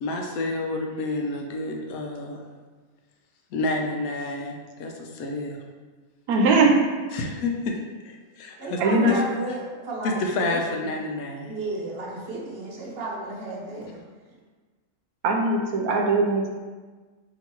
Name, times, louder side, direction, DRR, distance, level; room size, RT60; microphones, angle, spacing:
voice 1, 0.0-2.4 3.5-5.6 7.1-8.8 9.1-9.2 10.0-11.5, left 2 dB, 75° left, 2 dB, 1.0 m, -29 dB
voice 2, 6.3-6.8 8.8-9.2 15.2-16.5, right 3 dB, 90° right, 1 dB, 1.1 m, -20 dB
voice 3, 8.6-10.8 11.4-14.0, right 2 dB, 55° right, -3 dB, 0.8 m, -33 dB
2.9 x 2.8 x 4.4 m, 1.4 s
omnidirectional pair, 1.5 m